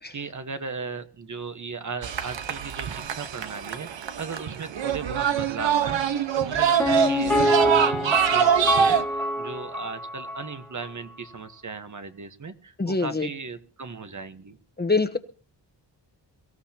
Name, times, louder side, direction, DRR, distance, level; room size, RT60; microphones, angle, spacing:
voice 1, 0.1-14.6, right 4 dB, 40° right, 9 dB, 1.3 m, -37 dB
sound 1, 2.0-9.0, right 8 dB, 80° right, 1.2 m, -24 dB
Piano, 6.8-10.6 10.8-10.9, left 1 dB, 5° left, 1.9 m, -25 dB
voice 2, 12.8-13.3 14.8-15.2, left 3 dB, 20° left, 7 dB, 1.1 m, -24 dB
23.5 x 15.0 x 2.9 m, 0.40 s
wide cardioid pair, 125°, 44 cm